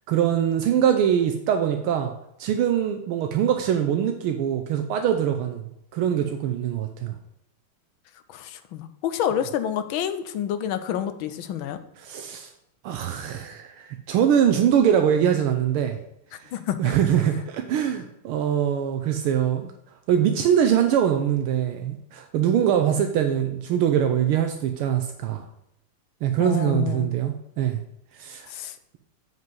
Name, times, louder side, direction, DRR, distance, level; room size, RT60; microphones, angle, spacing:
voice 1, 0.1-2.1 2.4-7.2 12.0-12.5 12.8-16.0 16.4-16.5 16.8-19.7 20.1-25.4 26.2-27.8 28.1-28.5, right 9 dB, 80° right, 5 dB, 1.6 m, -23 dB
voice 2, 8.3-11.8 16.5-16.9 26.4-27.1 28.5-28.8, left 9 dB, 75° left, 11 dB, 1.4 m, -28 dB
7.7 x 5.4 x 5.4 m, 0.81 s
omnidirectional pair, 2.4 m